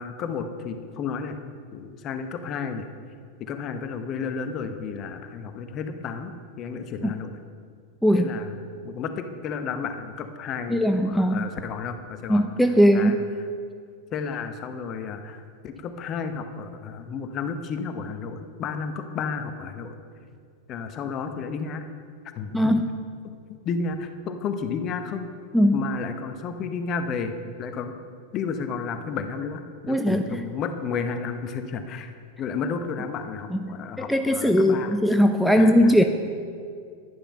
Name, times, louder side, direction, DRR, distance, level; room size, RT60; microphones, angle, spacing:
voice 1, 0.0-1.4 1.7-2.9 3.4-7.3 8.1-8.6 8.8-12.4 12.9-13.2 14.1-20.0 20.7-21.8 22.3-22.7 23.2-25.3 25.7-27.9 28.3-32.1 32.4-35.0 35.5-36.0, left 5 dB, 35° left, 8 dB, 0.9 m, -32 dB
voice 2, 10.7-11.5 12.3-13.2 22.5-22.9 25.5-25.8 29.9-30.2 33.5-33.6 34.1-36.0, equal, ahead, 6 dB, 0.5 m, -19 dB
10.5 x 10.0 x 5.5 m, 2.2 s
figure-of-eight pair, 90°, 0 cm